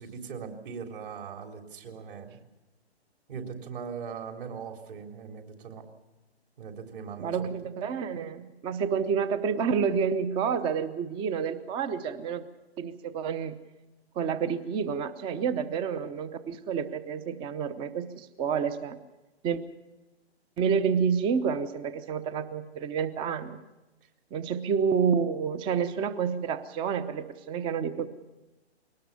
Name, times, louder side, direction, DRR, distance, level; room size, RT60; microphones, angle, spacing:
voice 1, 0.0-2.4 3.3-5.8 6.6-7.6, right 6 dB, 50° right, 3 dB, 3.7 m, -40 dB
voice 2, 7.2-12.4 12.8-13.6 14.2-19.0 19.4-19.6 20.6-23.6 24.3-28.1, right 6 dB, 15° right, 13 dB, 0.8 m, -29 dB
22.5 x 19.0 x 7.0 m, 1.0 s
figure-of-eight pair, 130°, 33 cm